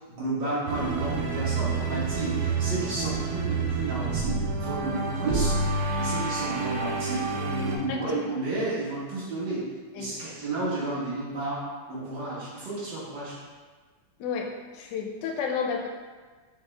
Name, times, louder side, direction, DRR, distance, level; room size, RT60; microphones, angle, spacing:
voice 1, 0.1-9.6 9.9-11.6 11.9-13.3, right 2 dB, 55° right, -8 dB, 2.0 m, -32 dB
sound 1, 0.7-7.8, right 3 dB, 80° right, 0.9 m, -28 dB
voice 2, 14.2-15.9, left 6 dB, 75° left, 2 dB, 1.0 m, -31 dB
6.2 x 2.3 x 3.2 m, 1.4 s
omnidirectional pair, 2.3 m